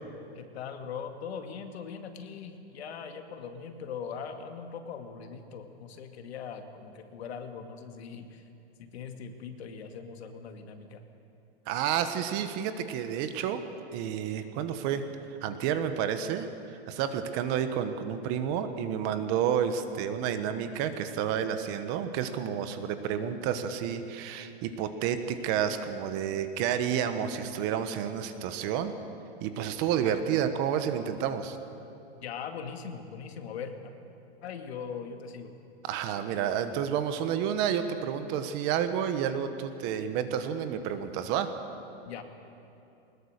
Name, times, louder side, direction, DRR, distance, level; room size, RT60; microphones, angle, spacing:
voice 1, 0.3-8.5 8.8-11.0 32.2-33.8 34.4-35.5 42.1-42.2, left 6 dB, 70° left, 5 dB, 2.2 m, -40 dB
voice 2, 11.7-13.6 13.9-15.0 15.4-16.5 16.9-28.9 29.4-31.6 35.8-41.5, right 9 dB, 30° right, 9 dB, 1.1 m, -30 dB
21.5 x 20.0 x 6.6 m, 2.9 s
supercardioid pair, 160°, 33 cm